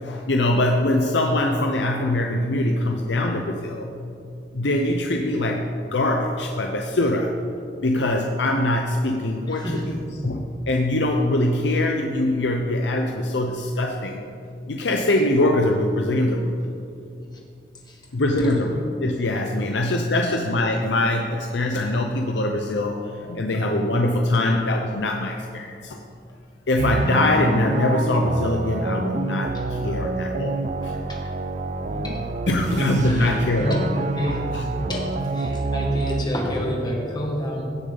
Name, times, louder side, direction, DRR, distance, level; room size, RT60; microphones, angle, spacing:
voice 1, 0.0-4.0 4.5-7.4 7.8-10.0 10.2-14.2 14.7-16.6 18.1-26.0 26.7-30.9 31.9-33.9 34.5-35.1 35.5-35.7, left 1 dB, 80° left, 2 dB, 0.7 m, -23 dB
voice 2, 9.5-9.8 17.9-18.0 31.1-31.2 32.0-32.2 33.0-33.8 34.2-34.4 34.9-35.1 35.3-37.6, equal, 25° left, -1 dB, 1.8 m, -28 dB
sound 1, 26.8-36.2, right 3 dB, 45° right, 0.4 m, -27 dB
16.5 x 6.5 x 3.9 m, 2.6 s
head